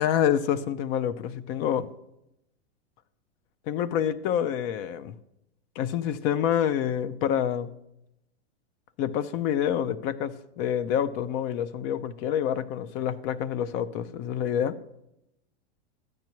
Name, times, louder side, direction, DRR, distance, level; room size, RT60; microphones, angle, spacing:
voice 1, 0.0-1.9 3.7-5.1 5.8-7.7 9.0-14.8, left 9 dB, 35° left, 15 dB, 0.5 m, -27 dB
13.0 x 9.2 x 3.0 m, 0.84 s
hypercardioid pair, 125°, 34 cm